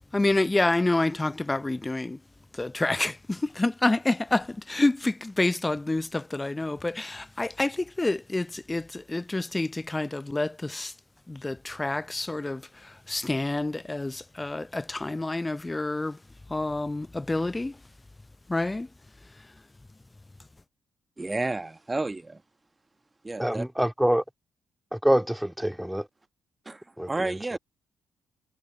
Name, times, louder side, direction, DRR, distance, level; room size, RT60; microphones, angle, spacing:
voice 1, 0.1-2.2 2.6-10.9 11.3-12.6 13.1-16.2 16.5-17.7 18.5-18.9, left 2 dB, 15° left, 0.6 m, -28 dB
voice 2, 21.2-22.4 23.2-23.6 26.6-27.6, right 2 dB, 20° right, 1.5 m, -31 dB
voice 3, 23.4-24.2 24.9-26.1 27.0-27.3, equal, 5° right, 3.3 m, -25 dB
figure-of-eight pair, 40°, 0 cm